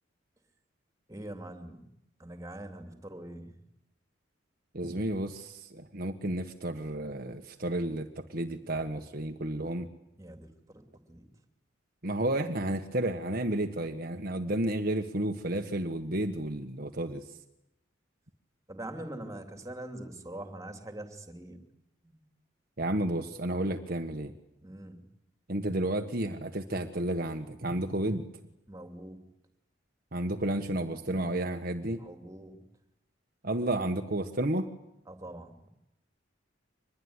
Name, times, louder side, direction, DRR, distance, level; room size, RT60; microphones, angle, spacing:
voice 1, 1.1-1.9 2.2-3.6 10.2-10.8 11.1-11.3 18.7-21.6 22.0-22.2 24.6-25.1 28.7-29.2 32.0-32.6 35.1-35.7, right 1 dB, 15° right, 6 dB, 3.1 m, -43 dB
voice 2, 4.7-9.9 12.0-17.2 22.8-24.3 25.5-28.2 30.1-32.0 33.4-34.7, right 1 dB, 50° right, 5 dB, 1.5 m, -31 dB
25.0 x 21.0 x 9.9 m, 0.84 s
head